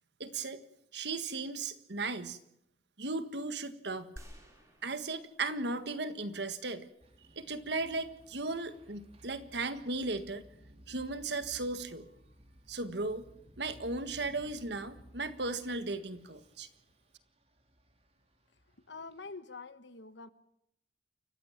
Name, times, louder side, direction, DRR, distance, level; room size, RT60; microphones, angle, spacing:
voice 1, 0.2-0.6 0.9-2.4 3.0-4.1 4.8-6.9 7.3-10.4 10.9-12.1 12.7-13.2 13.6-16.7, right 3 dB, 65° right, 11 dB, 1.7 m, -36 dB
sound 1, 4.2-5.9 6.4-6.5, equal, 15° right, 6.2 m, -53 dB
sound 2, 7.0-19.3, equal, 35° right, 3.5 m, -59 dB
voice 2, 18.8-20.3, left 4 dB, 70° left, 12 dB, 1.5 m, -46 dB
29.0 x 15.0 x 7.3 m, 0.78 s
head